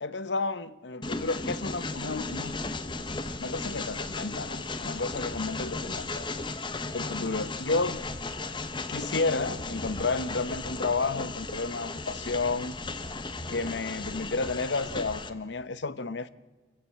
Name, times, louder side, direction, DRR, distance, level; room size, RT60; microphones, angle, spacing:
voice 1, 0.0-2.6 3.4-6.2 6.9-8.0 8.9-12.8 13.5-16.3, left 3 dB, 90° left, 0.9 m, -31 dB
Train, 1.0-15.3, left 3 dB, 25° left, 1.0 m, -35 dB
28.0 x 15.0 x 7.5 m
head